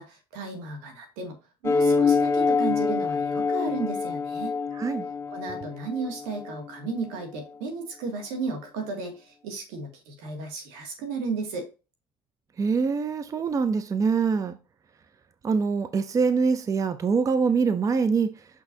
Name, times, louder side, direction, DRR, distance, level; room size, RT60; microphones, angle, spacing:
voice 1, 0.0-1.4 1.6-4.5 5.3-11.7, right 4 dB, 80° right, 2.2 m, -34 dB
sound 1, 1.6-6.6, left 4 dB, 25° left, 1.1 m, -25 dB
voice 2, 12.6-14.6 15.4-18.5, right 5 dB, 30° right, 0.6 m, -24 dB
6.2 x 6.0 x 2.7 m
supercardioid pair, 90°, 11 cm